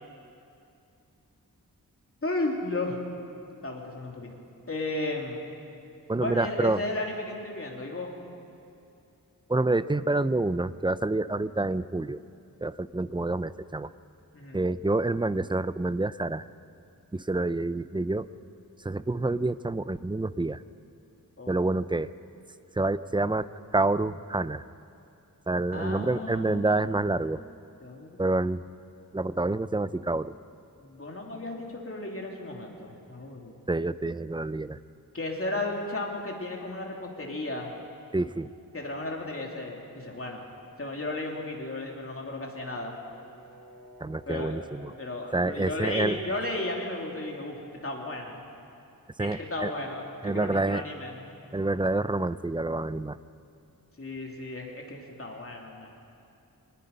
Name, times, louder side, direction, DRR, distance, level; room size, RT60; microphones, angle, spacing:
voice 1, 2.2-3.0 3.6-4.3 4.7-5.4 6.1-8.1 14.3-14.6 21.4-21.6 23.1-23.2 25.7-26.9 27.8-28.2 30.8-33.6 35.1-37.7 38.7-40.4 40.8-43.0 44.3-44.6 45.0-48.4 49.2-51.2 54.0-55.9, left 2 dB, 40° left, 0 dB, 3.0 m, -34 dB
voice 2, 6.1-6.8 9.5-12.2 12.6-13.9 14.5-16.4 17.1-18.3 18.8-20.6 21.5-22.1 22.8-23.5 23.7-24.6 25.5-27.4 28.2-28.6 29.1-30.4 33.7-34.8 38.1-38.5 44.0-44.9 45.3-46.4 49.2-49.7 50.2-50.8 51.5-53.2, right 2 dB, 15° right, 15 dB, 0.4 m, -27 dB
Brass instrument, 42.5-46.8, right 2 dB, 55° right, 5.7 m, -52 dB
24.5 x 19.5 x 5.4 m, 2.6 s
wide cardioid pair, 105°, 35 cm